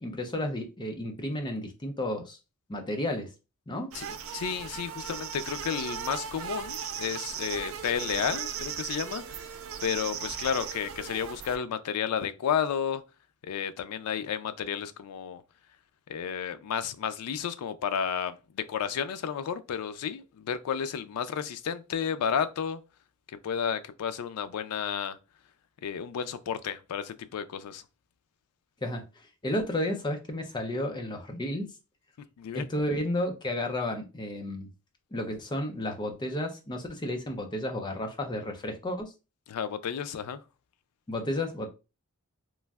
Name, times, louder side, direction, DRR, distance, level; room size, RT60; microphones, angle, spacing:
voice 1, 0.0-2.4 2.7-3.3 3.7-3.9 28.8-31.7 32.5-34.7 35.1-39.1 41.1-41.7, left 1 dB, 20° left, 0.4 m, -32 dB
voice 2, 3.9-9.5 9.8-13.0 13.5-15.4 16.1-22.8 23.4-25.2 25.8-27.8 32.4-32.7 39.5-40.4, left 7 dB, 85° left, 0.3 m, -32 dB
sound 1, 3.9-11.6, right 8 dB, 65° right, 0.3 m, -37 dB
3.1 x 2.5 x 2.3 m
head